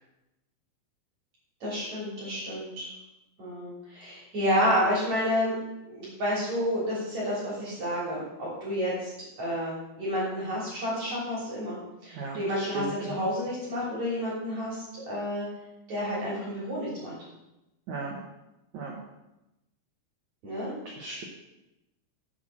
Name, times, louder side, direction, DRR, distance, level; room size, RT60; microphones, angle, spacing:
voice 1, 1.6-2.9 3.4-5.5 5.8-9.1 9.4-11.8 12.0-15.5 15.9-17.1 20.4-20.7, equal, 45° right, -7 dB, 4.1 m, -30 dB
voice 2, 12.1-13.2 17.9-18.2 18.7-18.9 20.8-21.3, right 3 dB, 75° right, -1 dB, 1.7 m, -36 dB
8.6 x 8.0 x 6.2 m, 0.95 s
omnidirectional pair, 5.1 m